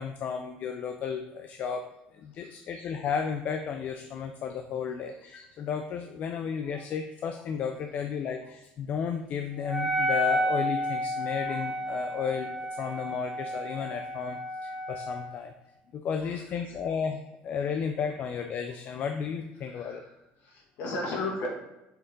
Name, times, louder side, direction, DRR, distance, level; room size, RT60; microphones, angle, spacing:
voice 1, 0.0-1.8 2.1-15.5 15.9-20.0, left 6 dB, 50° left, 5 dB, 0.4 m, -33 dB
Wind instrument woodwind instrument, 9.6-15.4, equal, 15° right, 1.0 m, -31 dB
voice 2, 19.6-20.1 20.4-21.5, left 2 dB, 65° left, -1 dB, 2.0 m, -34 dB
6.9 x 3.8 x 3.7 m, 0.94 s
cardioid pair, 120°, 4 cm